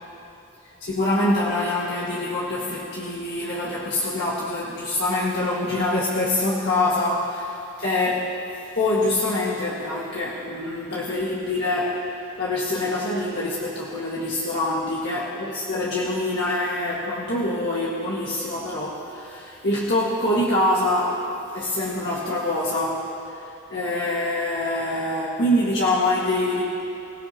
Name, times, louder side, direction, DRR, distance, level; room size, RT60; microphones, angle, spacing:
voice 1, 0.8-8.3 8.8-12.0 12.4-21.2 21.5-23.1 23.7-26.6, left 1 dB, 50° left, -6 dB, 1.8 m, -25 dB
24.5 x 17.5 x 2.9 m, 2.7 s
head